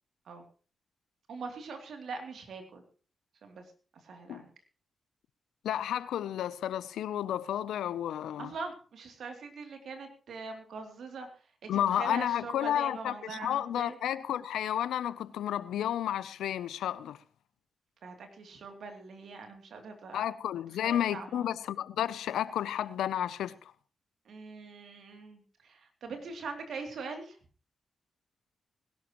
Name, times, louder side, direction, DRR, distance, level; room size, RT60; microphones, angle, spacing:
voice 1, 1.3-2.8 3.4-3.6 4.0-4.5 8.4-11.3 11.6-14.0 18.0-20.2 20.7-21.6 24.3-27.4, right 4 dB, 75° right, 2.8 m, -42 dB
voice 2, 5.6-8.5 11.7-17.2 20.1-23.6, left 11 dB, 85° left, 0.6 m, -31 dB
20.0 x 12.0 x 3.0 m
supercardioid pair, 40°, 0 cm